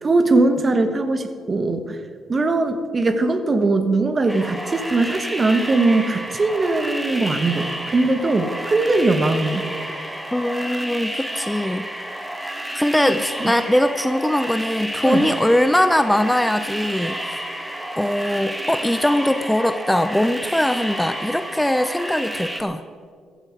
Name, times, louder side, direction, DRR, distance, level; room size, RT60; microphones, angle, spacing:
voice 1, 0.0-2.0 2.3-9.7 13.1-13.2 15.0-15.3, right 2 dB, 35° right, 9 dB, 1.3 m, -20 dB
sound 1, 4.3-22.6, right 1 dB, 10° right, 1.6 m, -31 dB
voice 2, 10.3-11.9 12.7-17.4 18.0-22.8, left 1 dB, 5° left, 11 dB, 0.6 m, -21 dB
15.0 x 12.5 x 4.7 m, 2.1 s
hypercardioid pair, 55°, 0 cm